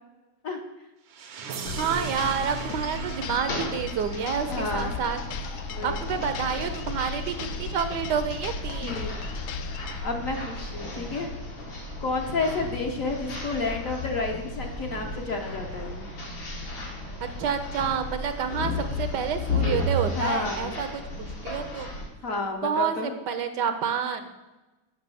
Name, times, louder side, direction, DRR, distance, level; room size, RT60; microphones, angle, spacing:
sound 1, 1.1-6.0, right 5 dB, 85° right, 1.8 m, -39 dB
sound 2, 1.7-10.0, left 5 dB, 90° left, 0.7 m, -36 dB
voice 1, 1.7-5.2 5.8-9.0 17.2-18.7 19.0-21.9 22.6-24.2, right 7 dB, 70° right, 8 dB, 1.2 m, -29 dB
sound 3, 2.9-22.1, left 2 dB, 75° left, 2.8 m, -34 dB
voice 2, 4.5-5.0 5.7-6.0 8.8-9.3 10.0-11.3 12.0-16.0 20.1-20.7 22.2-23.1, left 3 dB, 50° left, 2 dB, 1.2 m, -30 dB
8.0 x 5.8 x 6.9 m, 1.1 s
omnidirectional pair, 2.1 m